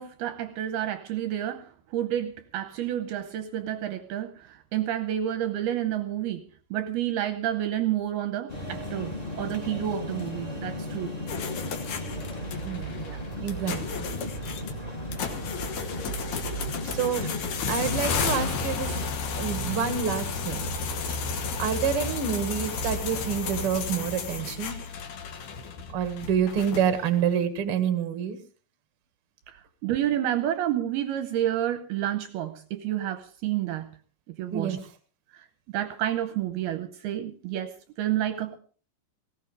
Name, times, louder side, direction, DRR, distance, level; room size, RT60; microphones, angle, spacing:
voice 1, 0.0-6.4 6.7-11.1 13.0-13.2 29.5-33.9 34.3-34.8 35.3-35.5 35.7-38.6, right 11 dB, 75° right, 9 dB, 2.5 m, -30 dB
sound 1, 8.5-19.1, equal, 15° left, 1.6 m, -35 dB
sound 2, 11.3-27.2, left 5 dB, 65° left, 2.3 m, -33 dB
voice 2, 12.6-13.0 13.4-14.1 16.8-17.3 17.7-19.0 19.4-20.7 21.6-24.8 25.9-28.4 34.5-34.8, right 7 dB, 55° right, 9 dB, 1.6 m, -28 dB
19.0 x 16.5 x 3.4 m, 0.38 s
omnidirectional pair, 5.2 m